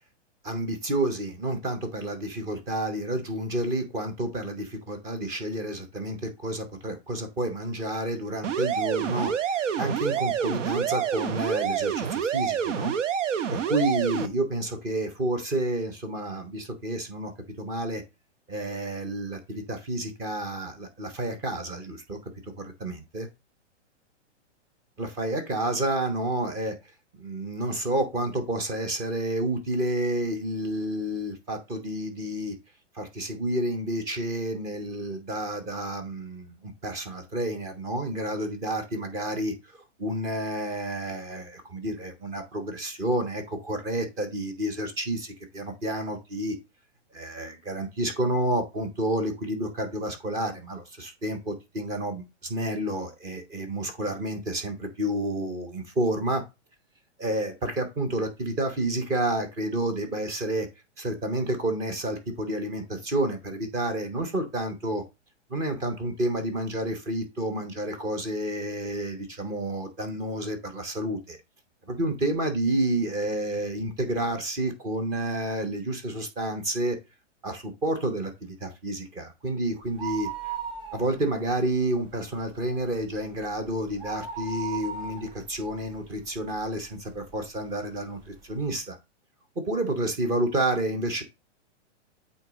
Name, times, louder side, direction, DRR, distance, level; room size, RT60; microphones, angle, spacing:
voice 1, 0.4-12.9 13.5-17.3 17.6-18.0 18.5-22.2 22.4-23.3 25.0-26.8 27.1-32.6 32.9-46.6 47.1-56.4 57.2-60.7 61.0-65.0 65.5-71.4 71.9-77.0 77.4-80.5 80.9-89.0 89.6-91.2, right 1 dB, 10° right, 0.5 m, -30 dB
sound 1, 8.4-14.3, right 8 dB, 85° right, 0.9 m, -27 dB
sound 2, 79.8-81.5 81.8-81.9 82.4-86.8 87.3-87.4 88.2-88.3 88.5-88.6, right 7 dB, 35° right, 2.1 m, -37 dB
8.1 x 3.0 x 3.8 m
hypercardioid pair, 155°, 36 cm